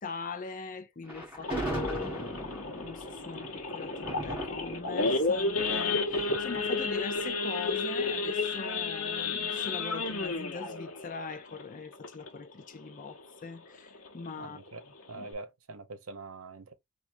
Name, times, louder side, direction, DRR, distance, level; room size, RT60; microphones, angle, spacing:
voice 1, 0.0-14.6 15.1-15.3, left 4 dB, 40° left, 0.6 m, -41 dB
Thunder, 1.0-8.2, right 1 dB, 10° right, 2.5 m, -40 dB
Idling / Accelerating revving vroom / Sawing, 1.4-12.5 12.9-13.1 13.4-13.5 13.9-14.2 14.7-14.8 15.0-15.3, left 3 dB, 85° left, 1.0 m, -32 dB
voice 2, 14.4-14.8 15.1-16.7, right 3 dB, 80° right, 0.8 m, -44 dB
4.6 x 2.6 x 2.5 m
head